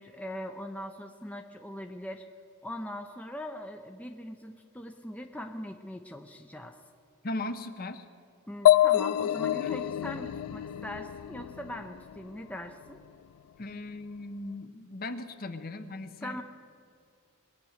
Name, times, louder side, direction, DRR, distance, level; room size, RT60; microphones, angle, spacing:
voice 1, 0.0-2.2 2.6-6.8 8.5-13.0 16.2-16.4, left 1 dB, 5° left, 4 dB, 0.6 m, -41 dB
voice 2, 7.2-8.1 9.6-9.8 13.6-16.4, left 2 dB, 45° left, 9 dB, 0.8 m, -38 dB
sound 1, 8.7-12.3, left 12 dB, 85° left, 0.3 m, -26 dB
21.0 x 9.4 x 6.5 m, 2.4 s
head